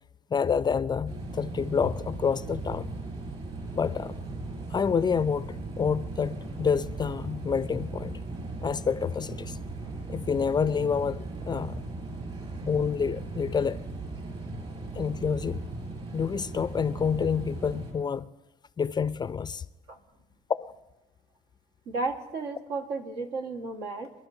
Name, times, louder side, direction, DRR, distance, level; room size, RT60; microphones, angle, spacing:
voice 1, 0.3-2.9 3.7-4.2 4.7-8.1 8.6-9.6 10.1-11.8 12.6-13.8 15.0-15.6 16.1-18.3 18.8-19.6 20.6-20.7, left 6 dB, 25° left, 0.4 m, -28 dB
sound 1, 1.1-17.9, right 2 dB, 40° right, 5.6 m, -38 dB
voice 2, 21.8-24.1, right 3 dB, 80° right, 1.7 m, -33 dB
27.0 x 12.0 x 2.7 m
cardioid pair, 110°, 17 cm